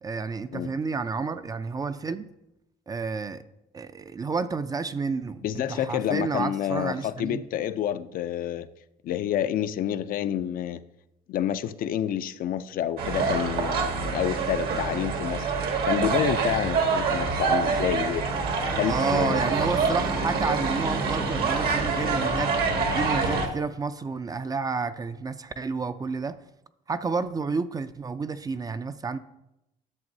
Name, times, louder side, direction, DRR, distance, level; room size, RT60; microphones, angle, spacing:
voice 1, 0.0-2.3 2.9-3.4 3.7-5.4 5.7-7.4 18.8-22.5 22.9-26.4 26.9-29.2, right 4 dB, 20° right, 12 dB, 0.4 m, -30 dB
voice 2, 5.4-8.7 9.0-10.8 11.3-15.5 15.9-18.3 18.7-19.4, left 10 dB, 60° left, 12 dB, 0.4 m, -28 dB
sound 1, 13.0-23.5, right 4 dB, 65° right, 1.4 m, -26 dB
10.5 x 7.0 x 2.7 m, 0.87 s
cardioid pair, 110°, 17 cm